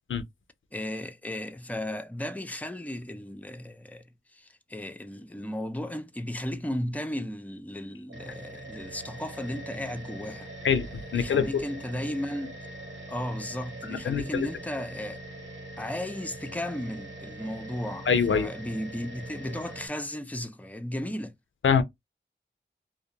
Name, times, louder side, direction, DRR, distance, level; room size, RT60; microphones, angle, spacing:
voice 1, 0.7-4.0 4.3-10.5 11.1-12.6 13.1-15.2 15.8-21.3, left 1 dB, 10° left, 0.5 m, -35 dB
sound 1, 8.1-19.9, right 1 dB, 75° right, 1.2 m, -43 dB
voice 2, 10.6-11.5 13.9-14.5 18.1-18.5 21.6-21.8, left 6 dB, 85° left, 0.4 m, -24 dB
2.3 x 2.1 x 2.8 m
cardioid pair, 40°, 20 cm